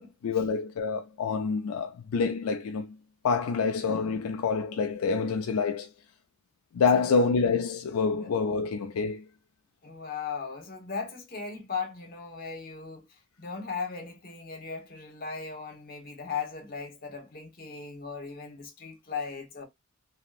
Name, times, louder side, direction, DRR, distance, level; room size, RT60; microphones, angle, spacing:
voice 1, 0.2-3.0 3.2-5.9 6.7-9.2, left 5 dB, 85° left, 0.4 m, -27 dB
voice 2, 9.8-13.0 13.4-19.6, left 5 dB, 45° left, 1.1 m, -37 dB
2.9 x 2.7 x 2.4 m
head